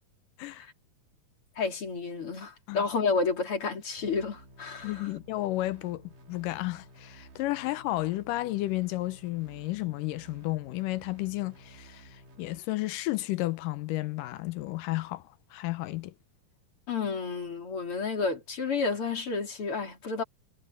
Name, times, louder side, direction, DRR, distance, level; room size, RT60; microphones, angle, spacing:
voice 1, 1.6-5.2 16.9-20.2, left 4 dB, 40° left, 4.1 m, -31 dB
sound 1, 4.0-12.6, right 2 dB, 65° right, 5.7 m, -53 dB
voice 2, 4.8-15.2 15.5-16.1, left 18 dB, 80° left, 2.2 m, -32 dB
omnidirectional pair, 4.0 m